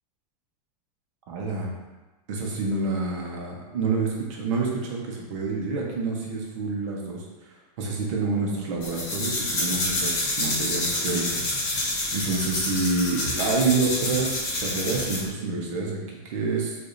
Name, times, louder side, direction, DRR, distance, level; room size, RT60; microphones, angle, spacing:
voice 1, 1.3-1.8 2.3-16.7, right 3 dB, 55° right, -2 dB, 0.9 m, -28 dB
sound 1, 8.8-15.3, left 2 dB, 35° left, 1.0 m, -28 dB
4.7 x 2.5 x 2.6 m, 1.2 s
supercardioid pair, 170°, 20 cm